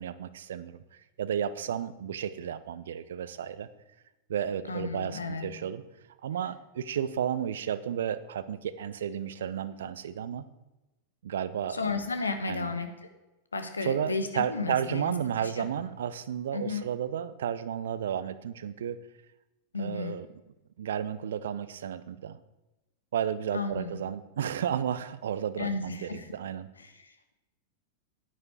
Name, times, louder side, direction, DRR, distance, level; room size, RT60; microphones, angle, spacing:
voice 1, 0.0-3.7 4.3-5.8 6.2-10.5 11.2-11.8 12.5-12.7 13.8-19.0 19.8-20.3 20.8-22.4 23.1-26.7, right 9 dB, 60° right, 15 dB, 0.6 m, -32 dB
voice 2, 4.7-5.5 11.7-13.1 13.5-15.6 16.5-16.9 19.7-20.2 23.5-24.0 25.6-26.3 26.8-27.3, left 4 dB, 75° left, 8 dB, 1.2 m, -34 dB
9.9 x 9.7 x 4.7 m, 1.0 s
figure-of-eight pair, 90°, 0 cm